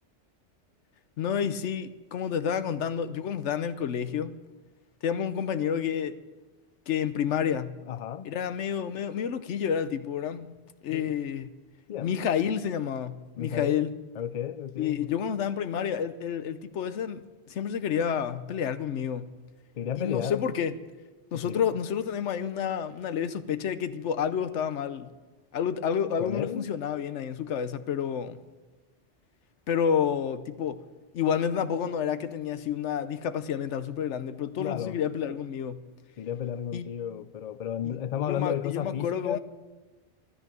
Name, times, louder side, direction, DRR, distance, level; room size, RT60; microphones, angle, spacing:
voice 1, 1.2-4.4 5.0-6.2 6.9-7.8 8.2-10.5 10.8-11.5 12.0-13.9 14.8-19.3 20.0-20.8 21.3-25.1 25.5-28.4 29.7-30.8 31.1-35.8 36.7-36.9 37.8-39.4, left 8 dB, 80° left, 1.1 m, -29 dB
voice 2, 7.9-8.3 10.9-11.1 11.9-12.1 13.4-15.1 19.8-20.4 21.3-21.7 26.2-26.7 34.6-35.0 36.2-39.4, left 9 dB, 55° left, 0.4 m, -33 dB
13.5 x 12.5 x 6.8 m
omnidirectional pair, 1.2 m